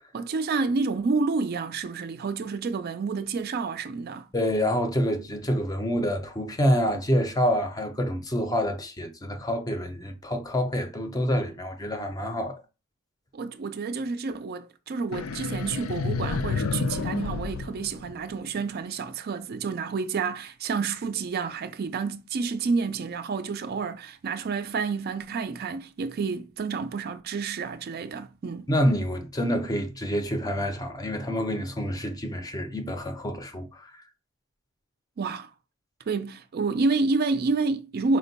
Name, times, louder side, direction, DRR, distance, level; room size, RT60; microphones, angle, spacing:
voice 1, 0.1-4.3 13.3-28.7 35.2-35.5 36.1-38.2, right 4 dB, 50° right, 0.4 m, -29 dB
voice 2, 4.3-12.6 28.7-34.0, equal, 20° left, 0.5 m, -27 dB
sound 1, 15.1-18.6, left 4 dB, 85° left, 0.4 m, -30 dB
4.3 x 2.2 x 3.9 m
head